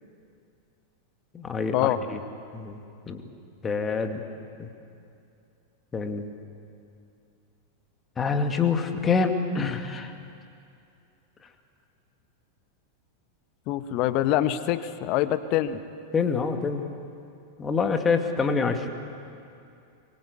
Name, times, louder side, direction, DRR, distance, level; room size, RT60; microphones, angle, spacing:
voice 1, 1.3-1.8 2.1-2.2 2.5-3.2 3.6-4.2 4.6-4.7 5.9-6.3 8.2-10.1 16.1-16.9 17.6-18.9, left 5 dB, 20° left, 6 dB, 2.2 m, -26 dB
voice 2, 13.7-15.8, left 13 dB, 40° left, 12 dB, 1.2 m, -25 dB
24.5 x 24.0 x 8.1 m, 2.5 s
figure-of-eight pair, 90°, 0 cm